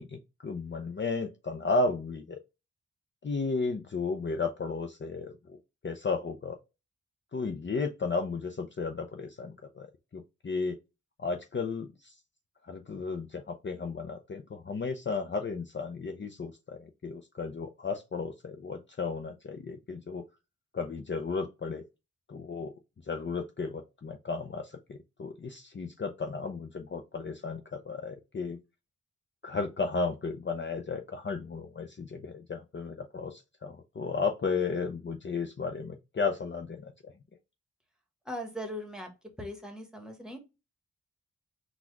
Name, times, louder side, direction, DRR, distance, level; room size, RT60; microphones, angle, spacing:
voice 1, 0.0-2.4 3.2-5.6 5.8-6.6 7.3-9.9 10.1-10.8 11.2-12.1 12.7-20.2 20.7-21.8 22.3-22.7 23.1-28.6 29.4-37.1, left 4 dB, 40° left, 0.6 m, -34 dB
voice 2, 38.2-39.1 39.4-40.4, equal, ahead, 1.3 m, -39 dB
4.0 x 2.3 x 4.6 m
cardioid pair, 60°, 29 cm